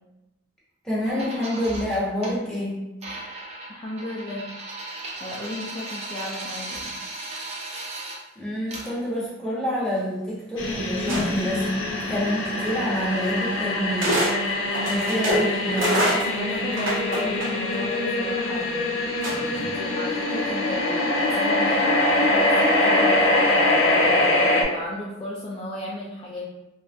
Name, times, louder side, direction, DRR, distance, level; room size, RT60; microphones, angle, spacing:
voice 1, 0.8-2.8 8.4-14.2 14.9-16.0, equal, 5° left, -8 dB, 0.9 m, -27 dB
Coin spin, 1.0-2.3 3.0-8.2 8.7-9.0, right 2 dB, 35° right, 0.5 m, -36 dB
voice 2, 3.7-4.4 5.2-6.9 15.7-15.8 16.1-19.0 19.6-23.9 24.6-26.5, left 1 dB, 30° left, -5 dB, 0.3 m, -34 dB
sound 1, 10.6-24.6, left 1 dB, 75° left, 0.6 m, -23 dB
sound 2, 11.1-11.6 12.7-12.8 14.0-14.3 14.7-17.8 19.2-19.7, equal, 80° right, 0.8 m, -25 dB
3.2 x 2.5 x 2.3 m, 0.95 s
head